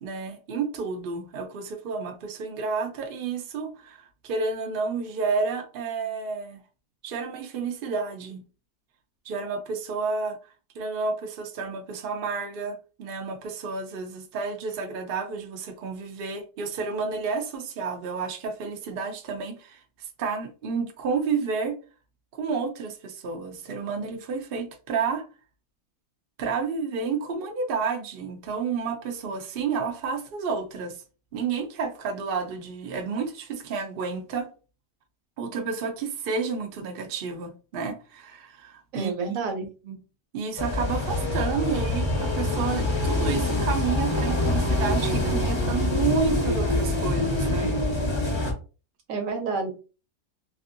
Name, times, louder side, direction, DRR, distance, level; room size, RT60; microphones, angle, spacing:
voice 1, 0.0-6.6 7.0-8.4 9.2-21.8 22.3-25.2 26.4-31.0 31.3-34.5 35.4-39.4 39.8-40.0 40.3-47.7, right 5 dB, 80° right, 0.5 m, -30 dB
voice 2, 38.9-39.7 49.1-49.7, right 4 dB, 60° right, 1.0 m, -29 dB
sound 1, 40.6-48.5, left 1 dB, 35° left, 0.5 m, -25 dB
3.3 x 2.6 x 2.5 m
omnidirectional pair, 1.8 m